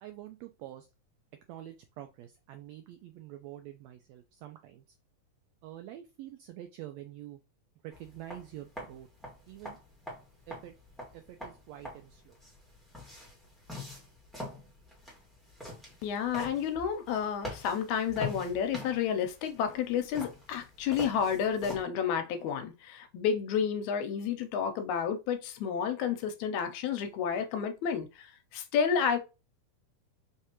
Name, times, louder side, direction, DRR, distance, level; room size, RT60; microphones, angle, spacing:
voice 1, 0.0-0.9 1.5-5.0 5.6-7.4 7.8-9.1 9.5-9.8 10.5-10.7 11.1-12.4, right 13 dB, 85° right, 1.5 m, -46 dB
sound 1, 7.9-21.8, left 2 dB, ahead, 0.9 m, -44 dB
voice 2, 16.0-29.2, left 7 dB, 80° left, 1.9 m, -31 dB
4.8 x 3.2 x 2.8 m
omnidirectional pair, 3.5 m